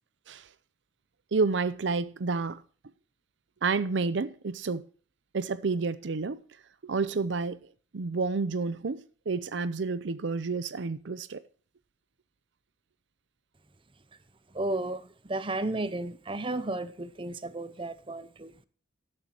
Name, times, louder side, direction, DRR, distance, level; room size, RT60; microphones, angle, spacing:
voice 1, 1.3-2.6 3.6-4.9 5.3-6.4 6.8-7.6 7.9-11.4, right 4 dB, 70° right, 0.6 m, -30 dB
voice 2, 14.5-18.5, right 2 dB, 30° right, 0.8 m, -33 dB
13.5 x 11.0 x 2.9 m
head